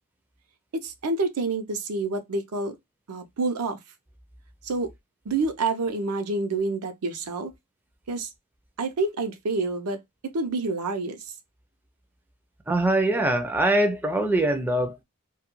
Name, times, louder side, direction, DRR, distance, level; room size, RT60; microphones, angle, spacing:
voice 1, 0.7-2.8 3.1-3.8 4.6-4.9 5.3-7.5 8.1-8.3 8.8-11.3, right 3 dB, 85° right, 0.6 m, -28 dB
voice 2, 12.7-15.0, right 1 dB, 10° right, 0.3 m, -23 dB
2.2 x 2.2 x 2.9 m
head